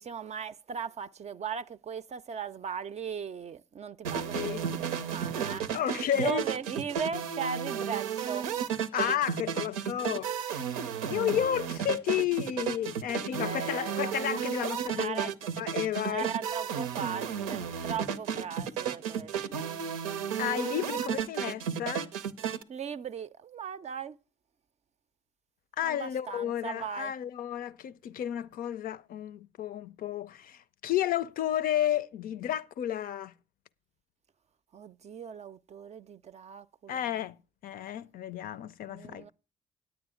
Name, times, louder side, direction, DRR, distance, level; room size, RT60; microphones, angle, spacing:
voice 1, 0.0-5.8 6.1-8.5 13.4-14.2 14.9-15.5 16.1-19.8 22.7-24.2 25.8-27.1 34.7-37.2 38.9-39.3, right 7 dB, 40° right, 0.5 m, -38 dB
sound 1, 4.0-22.6, right 8 dB, 85° right, 0.6 m, -33 dB
voice 2, 5.7-6.4 8.9-10.6 11.0-15.3 15.6-16.3 20.4-22.1 25.8-33.3 36.9-37.4 37.6-39.3, left 10 dB, 55° left, 0.5 m, -32 dB
9.3 x 8.8 x 4.9 m
hypercardioid pair, 45°, 17 cm